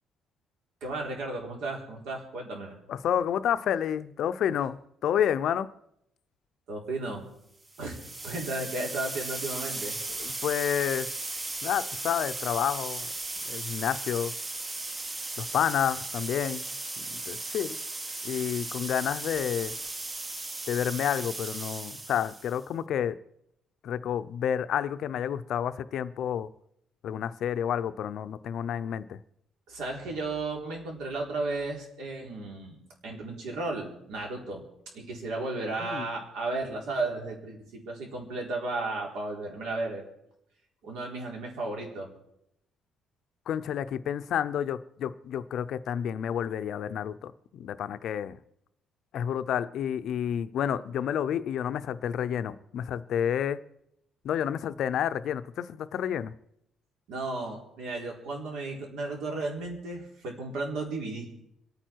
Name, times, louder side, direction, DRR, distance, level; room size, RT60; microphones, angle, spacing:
voice 1, 0.8-2.8 6.7-7.2 7.8-10.0 29.7-32.8 33.0-34.6 34.9-40.0 40.8-42.1 57.1-61.4, right 2 dB, 85° right, 0 dB, 4.0 m, -34 dB
voice 2, 2.9-5.7 10.2-11.1 11.6-13.1 13.4-14.3 15.4-16.7 17.1-17.8 18.2-19.7 20.7-23.2 23.8-26.5 27.0-29.2 35.8-36.1 43.5-48.4 49.1-53.6 54.2-56.3, left 9 dB, 55° left, 12 dB, 0.5 m, -30 dB
sound 1, 7.7-22.6, right 2 dB, 15° right, 0.6 m, -36 dB
27.0 x 9.1 x 4.6 m, 0.77 s
cardioid pair, 160°, 0 cm